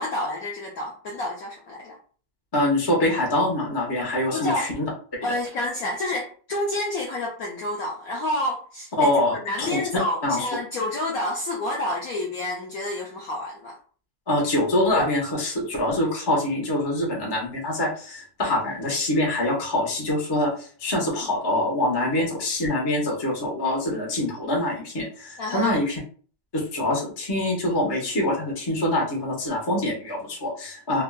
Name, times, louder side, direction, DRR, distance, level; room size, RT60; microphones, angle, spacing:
voice 1, 0.0-2.0 4.3-4.7 5.2-13.8 25.4-25.7, left 1 dB, 70° left, -2 dB, 0.8 m, -29 dB
voice 2, 2.5-4.9 9.0-9.8 10.2-10.4 14.3-26.0 26.5-31.0, left 1 dB, 30° left, -3 dB, 0.4 m, -24 dB
3.4 x 2.3 x 2.3 m, 0.42 s
omnidirectional pair, 2.1 m